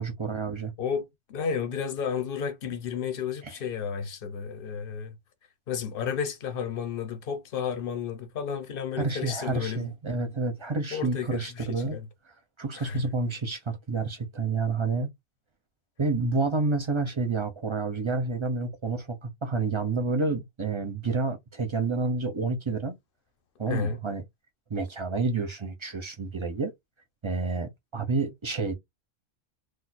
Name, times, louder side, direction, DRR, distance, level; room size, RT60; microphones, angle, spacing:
voice 1, 0.0-0.7 3.4-3.5 9.0-12.0 12.6-15.1 16.0-23.0 23.6-24.2 24.7-26.7 27.2-28.7, right 3 dB, 40° right, 0.4 m, -29 dB
voice 2, 0.8-5.2 5.7-9.9 10.9-12.1 12.8-13.0 23.7-24.0, left 7 dB, 55° left, 0.8 m, -32 dB
2.4 x 2.3 x 4.0 m
omnidirectional pair, 1.2 m